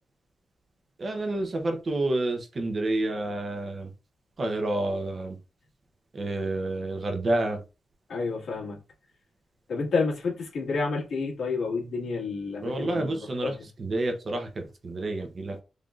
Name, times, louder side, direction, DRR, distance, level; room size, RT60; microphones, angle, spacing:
voice 1, 1.0-3.9 4.4-5.4 6.1-7.6 12.6-15.6, right 2 dB, 35° right, 0.7 m, -29 dB
voice 2, 8.1-8.8 9.7-13.5, left 4 dB, 60° left, 1.7 m, -30 dB
3.8 x 3.4 x 2.4 m
wide cardioid pair, 165°, 0 cm